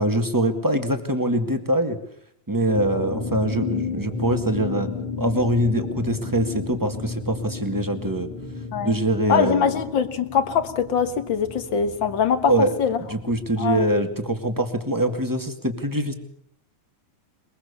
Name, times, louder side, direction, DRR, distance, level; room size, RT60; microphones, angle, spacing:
voice 1, 0.0-2.0 2.5-4.9 5.2-8.3 8.8-9.8 12.5-12.7 13.1-16.1, right 1 dB, 10° right, 7 dB, 1.2 m, -23 dB
sound 1, 2.7-14.3, left 4 dB, 90° left, 6.3 m, -33 dB
voice 2, 9.3-12.5 12.8-13.0 13.6-13.8, left 7 dB, 50° left, 11 dB, 1.8 m, -22 dB
22.0 x 22.0 x 6.9 m, 0.67 s
omnidirectional pair, 3.4 m